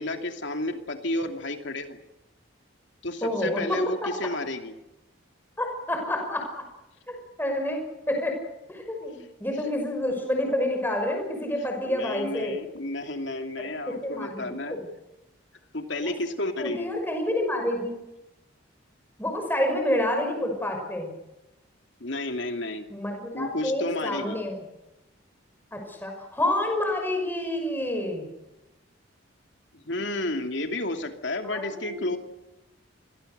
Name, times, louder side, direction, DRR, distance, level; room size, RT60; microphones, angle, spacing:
voice 1, 0.0-2.0 3.0-4.7 11.9-14.8 15.7-16.9 22.0-22.9 23.3-24.4 29.7-32.2, left 2 dB, 65° left, 5 dB, 2.7 m, -31 dB
voice 2, 3.2-4.1 5.6-6.5 7.1-7.8 8.1-8.3 8.7-12.6 13.6-14.8 16.0-16.1 16.6-18.0 19.2-21.1 22.9-24.6 25.7-28.3 31.4-32.0, left 1 dB, 10° left, 3 dB, 5.8 m, -28 dB
28.5 x 22.5 x 6.8 m, 0.98 s
head